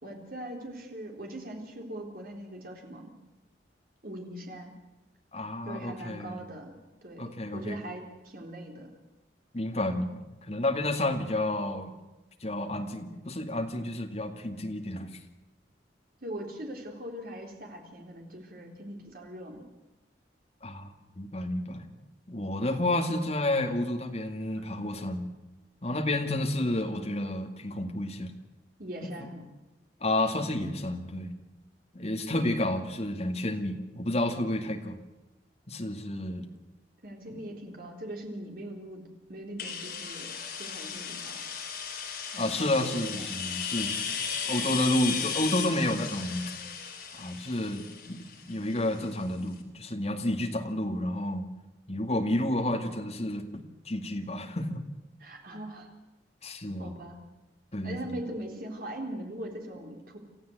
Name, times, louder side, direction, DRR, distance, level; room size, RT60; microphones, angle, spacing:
voice 1, 0.0-3.1 4.0-4.7 5.6-8.9 16.2-19.6 24.6-24.7 28.8-29.4 37.0-41.4 42.3-43.3 55.2-55.9 56.8-57.2 57.8-60.2, right 1 dB, 55° right, 2 dB, 3.8 m, -41 dB
voice 2, 5.3-6.4 7.2-7.8 9.5-11.9 12.4-15.2 20.6-20.9 21.2-21.8 22.3-25.3 25.8-28.3 29.2-29.3 30.0-31.3 31.9-35.0 35.7-36.5 37.3-37.4 42.4-44.1 44.4-46.5 47.1-51.5 51.9-54.8 56.4-56.9 57.7-58.2, left 1 dB, 35° left, 4 dB, 2.2 m, -30 dB
sound 1, 39.6-49.2, left 7 dB, 55° left, 3.7 m, -35 dB
27.5 x 14.5 x 8.1 m, 1.1 s
head